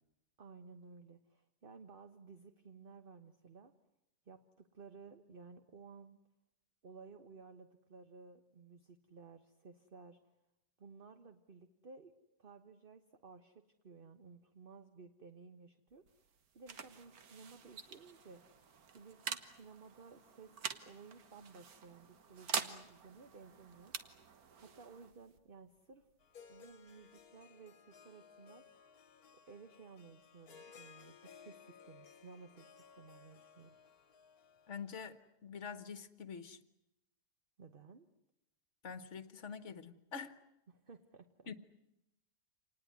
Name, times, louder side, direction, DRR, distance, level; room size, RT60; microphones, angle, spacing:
voice 1, 0.4-3.7 4.3-6.2 6.8-10.2 10.8-12.1 12.4-16.2 16.5-18.4 18.9-23.9 24.6-26.1 26.5-28.6 29.5-33.8 37.6-38.1 40.7-41.5, right 4 dB, 35° right, 8 dB, 1.2 m, -56 dB
sound 1, 15.9-27.2, right 6 dB, 65° right, 1.8 m, -46 dB
Harp, 26.2-35.2, left 7 dB, 65° left, 1.7 m, -60 dB
voice 2, 34.7-36.6 38.8-40.4 41.5-41.6, left 6 dB, 50° left, 13 dB, 1.6 m, -46 dB
27.0 x 20.0 x 9.5 m, 0.88 s
omnidirectional pair, 1.7 m